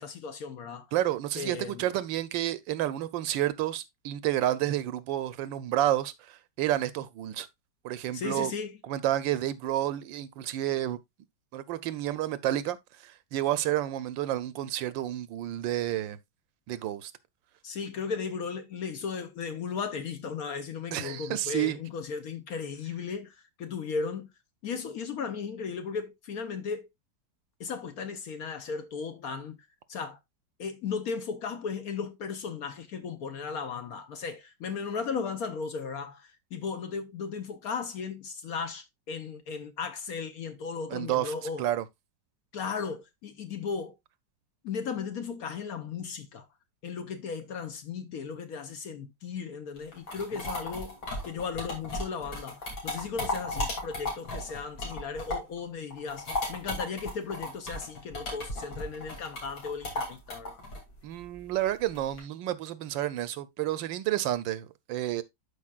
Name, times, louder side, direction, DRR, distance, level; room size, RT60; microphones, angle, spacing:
voice 1, 0.0-0.9 1.4-1.9 8.1-8.8 17.6-24.3 24.6-26.9 27.6-29.6 29.9-30.2 30.6-41.6 42.5-44.0 44.6-46.5 46.8-51.0 51.2-60.6, left 5 dB, 65° left, 1.0 m, -36 dB
voice 2, 0.9-7.5 7.8-8.5 8.9-11.0 11.5-12.8 13.0-16.2 16.7-17.1 20.9-21.8 40.9-41.8 61.0-65.2, right 13 dB, 85° right, 1.4 m, -30 dB
sound 1, 49.8-55.6 55.9-62.2, left 1 dB, 90° left, 3.6 m, -35 dB
12.0 x 5.0 x 2.4 m
omnidirectional pair, 2.1 m